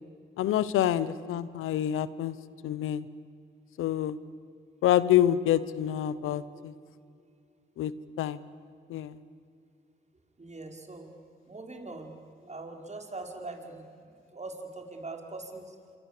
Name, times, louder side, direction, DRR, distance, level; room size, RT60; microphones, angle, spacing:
voice 1, 0.4-2.3 2.6-3.1 3.8-4.2 4.8-6.7 7.8-8.4 8.9-9.2, left 11 dB, 85° left, 17 dB, 0.9 m, -27 dB
voice 2, 10.4-11.1 11.5-12.2 12.4-15.8, right 2 dB, 35° right, 3 dB, 5.3 m, -42 dB
27.0 x 23.0 x 8.4 m, 2.4 s
supercardioid pair, 45°, 20 cm